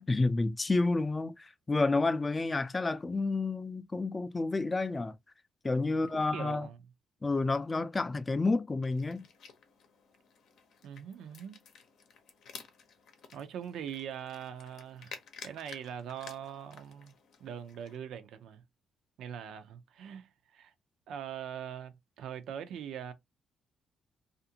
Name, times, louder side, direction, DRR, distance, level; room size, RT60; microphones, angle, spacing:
voice 1, 0.0-5.1 5.6-6.7 7.2-9.3, left 3 dB, 25° left, 0.4 m, -30 dB
voice 2, 5.8-6.8 10.8-11.6 13.3-15.1 15.4-17.1 17.4-18.6 19.2-20.7 21.1-23.1, right 8 dB, 80° right, 0.5 m, -42 dB
sound 1, 8.8-18.0, left 6 dB, 70° left, 0.7 m, -53 dB
2.5 x 2.5 x 2.7 m
cardioid pair, 90°, 0 cm